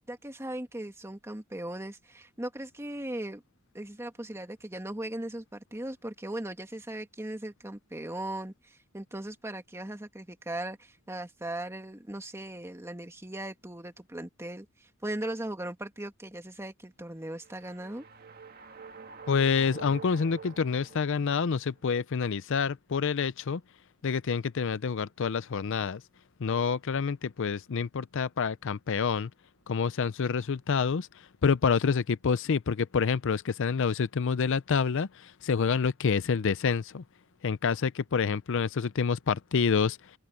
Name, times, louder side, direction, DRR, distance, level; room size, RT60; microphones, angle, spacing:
voice 1, 0.1-3.4 3.7-18.1, right 1 dB, 15° right, 1.9 m, -38 dB
sound 1, 17.3-21.6, right 5 dB, 45° right, 1.9 m, -47 dB
voice 2, 19.3-23.6 24.0-26.0 26.4-29.3 29.7-31.1 31.4-37.0 37.4-40.0, left 5 dB, 65° left, 0.5 m, -27 dB
open air
head